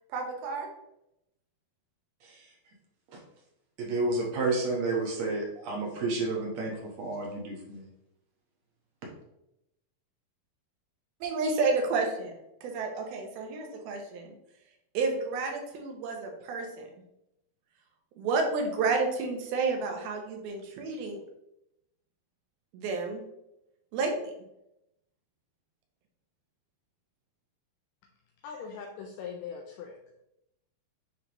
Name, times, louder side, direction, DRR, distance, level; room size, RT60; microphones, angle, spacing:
voice 1, 0.1-0.7 11.2-12.3 12.6-14.3 14.9-16.9 18.2-21.2 22.7-23.2 23.9-24.3, right 4 dB, 85° right, 3 dB, 2.8 m, -30 dB
voice 2, 3.8-7.8, right 3 dB, 60° right, -2 dB, 2.0 m, -31 dB
voice 3, 28.4-29.9, left 6 dB, 80° left, 1 dB, 1.9 m, -40 dB
9.5 x 3.3 x 3.0 m, 0.84 s
omnidirectional pair, 4.3 m